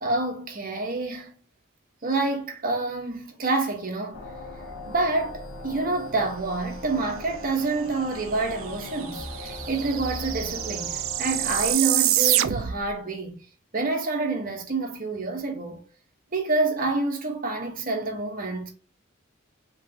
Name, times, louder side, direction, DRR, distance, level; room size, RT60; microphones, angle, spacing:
voice 1, 0.0-1.3 2.0-4.3 4.9-13.4 13.7-15.8 16.3-18.7, right 3 dB, 45° right, 1.1 m, -28 dB
sound 1, 4.1-11.7, left 2 dB, 75° left, 1.4 m, -39 dB
sound 2, 8.4-8.5 8.7-12.9, right 13 dB, 85° right, 0.4 m, -26 dB
5.3 x 3.1 x 2.8 m
head